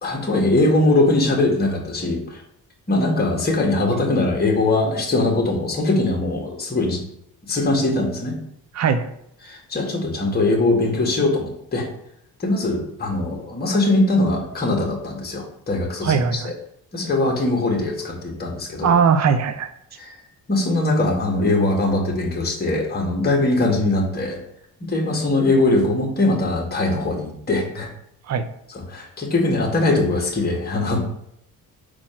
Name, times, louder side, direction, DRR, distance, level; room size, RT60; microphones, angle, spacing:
voice 1, 0.0-2.4 2.9-7.0 7.5-8.4 9.4-11.9 12.4-16.5 16.9-18.9 20.0-20.1 20.5-24.4 24.9-27.9 28.9-31.0, left 2 dB, 25° left, -1 dB, 1.8 m, -21 dB
voice 2, 8.7-9.1 16.0-16.5 18.8-19.7 28.3-28.5, right 6 dB, 45° right, 10 dB, 0.6 m, -19 dB
4.6 x 4.3 x 5.8 m, 0.75 s
cardioid pair, 120°, 38 cm